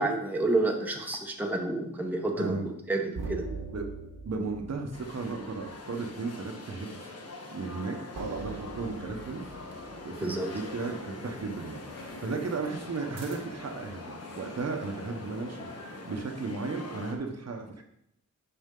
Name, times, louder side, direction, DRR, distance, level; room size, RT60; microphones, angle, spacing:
voice 1, 0.0-3.5 10.2-10.5, right 2 dB, 5° right, 2 dB, 0.9 m, -29 dB
voice 2, 2.3-2.8 3.1-3.2 3.7-3.9 4.2-7.0 7.5-9.4 10.0-17.8, right 4 dB, 55° right, 3 dB, 1.0 m, -35 dB
sound 1, 3.1-5.9 8.1-10.8 13.2-13.8, right 3 dB, 80° right, 1.4 m, -42 dB
sound 2, 4.9-17.1, left 2 dB, 50° left, 1.2 m, -45 dB
sound 3, 9.5-16.2, left 2 dB, 75° left, 1.7 m, -46 dB
11.0 x 4.3 x 3.8 m, 0.75 s
wide cardioid pair, 135°, 32 cm